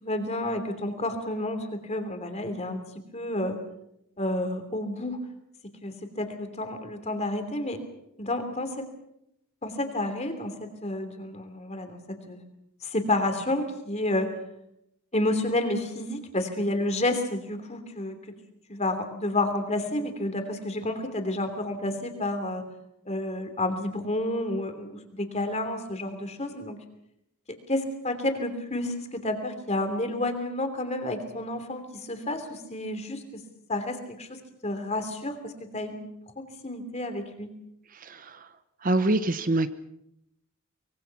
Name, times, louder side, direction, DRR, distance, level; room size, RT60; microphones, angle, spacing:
voice 1, 0.0-2.8 3.1-3.6 4.2-5.2 5.8-7.8 8.2-8.9 9.6-12.4 12.8-14.3 15.1-18.2 18.7-22.6 23.1-26.8 27.5-33.4 33.7-36.0 36.4-37.5, left 1 dB, 30° left, 7 dB, 3.0 m, -30 dB
voice 2, 37.9-38.5 38.8-39.7, right 2 dB, 40° right, 12 dB, 0.8 m, -25 dB
24.5 x 22.0 x 6.0 m, 0.80 s
head